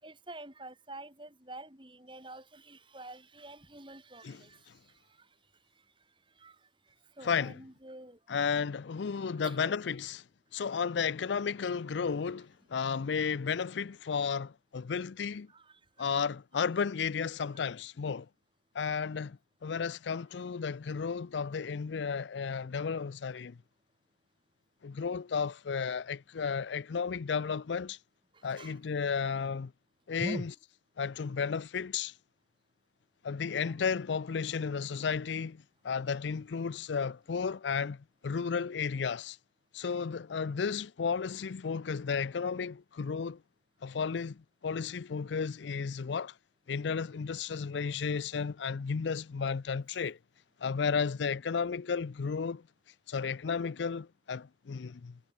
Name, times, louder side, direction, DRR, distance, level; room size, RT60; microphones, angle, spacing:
voice 1, 0.0-5.3 6.4-6.6 7.2-8.2 9.4-9.7 15.5-15.8 28.3-28.8 30.2-30.5 33.6-33.8 47.7-47.9, right 1 dB, 25° right, 6.1 m, -45 dB
voice 2, 4.2-4.7 7.2-7.6 8.3-10.2 10.5-15.5 16.0-18.3 18.7-23.6 24.8-28.0 28.4-29.7 30.1-30.5 31.0-32.1 33.2-39.4 39.7-43.4 43.8-46.3 46.7-50.2 50.6-52.6 53.1-55.2, left 6 dB, 80° left, 0.5 m, -33 dB
head